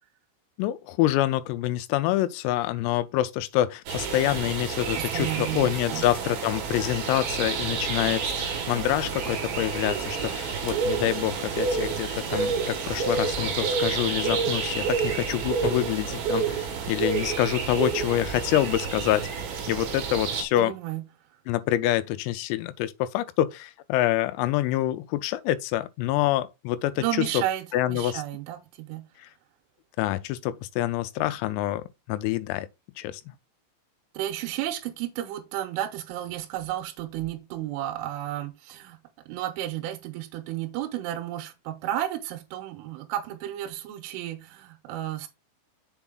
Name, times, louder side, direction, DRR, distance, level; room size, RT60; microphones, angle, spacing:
voice 1, 0.6-19.3 19.7-20.8 21.5-27.4 27.7-28.2 29.2-29.3 30.0-32.7 33.0-33.2, left 14 dB, 90° left, 3.3 m, -26 dB
sound 1, 3.9-20.4, right 5 dB, 65° right, 2.7 m, -29 dB
voice 2, 4.9-6.0 20.5-21.0 27.0-29.0 34.1-39.0 39.3-45.3, right 13 dB, 80° right, 3.2 m, -32 dB
sound 2, 13.4-14.1 15.6-16.1, left 7 dB, 70° left, 2.5 m, -40 dB
7.1 x 4.7 x 3.8 m
omnidirectional pair, 6.0 m